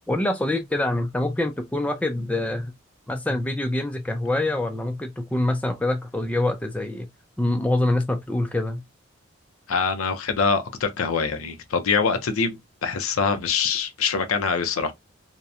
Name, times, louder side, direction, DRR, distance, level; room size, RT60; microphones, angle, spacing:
voice 1, 0.1-2.7 3.1-7.1 7.4-8.8, left 1 dB, 5° left, 0.3 m, -25 dB
voice 2, 9.7-14.9, left 5 dB, 85° left, 0.5 m, -24 dB
2.7 x 2.1 x 2.3 m
head